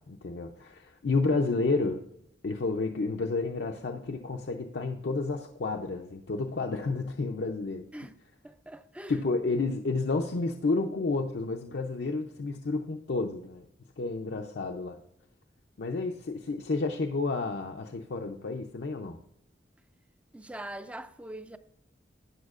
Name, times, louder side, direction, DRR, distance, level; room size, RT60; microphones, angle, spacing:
voice 1, 0.1-2.0 2.4-7.9 9.1-13.7 14.0-15.0 15.8-19.2, left 3 dB, 70° left, 0.5 m, -30 dB
voice 2, 8.4-9.2 20.3-21.6, right 1 dB, 5° right, 0.4 m, -42 dB
12.5 x 8.8 x 2.4 m
head